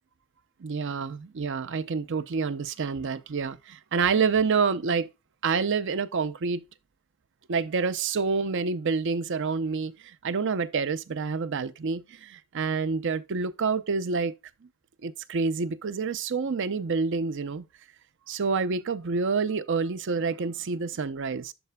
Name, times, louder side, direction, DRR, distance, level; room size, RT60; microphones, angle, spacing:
voice 1, 0.6-5.1 5.4-6.6 7.5-14.3 15.0-17.6 18.3-21.5, right 5 dB, 60° right, 0.5 m, -28 dB
12.0 x 4.2 x 2.2 m
head